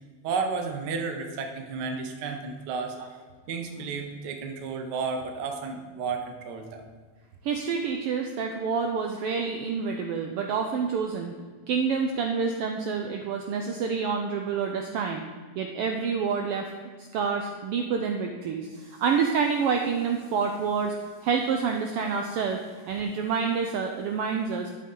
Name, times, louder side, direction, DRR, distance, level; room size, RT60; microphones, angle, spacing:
voice 1, 0.2-3.0 3.5-6.8, right 4 dB, 70° right, 4 dB, 1.0 m, -32 dB
voice 2, 7.4-11.3 11.7-15.2 15.6-16.7 17.0-22.6 22.9-24.7, right 5 dB, 85° right, 3 dB, 1.3 m, -28 dB
11.0 x 8.3 x 3.8 m, 1.5 s
omnidirectional pair, 3.3 m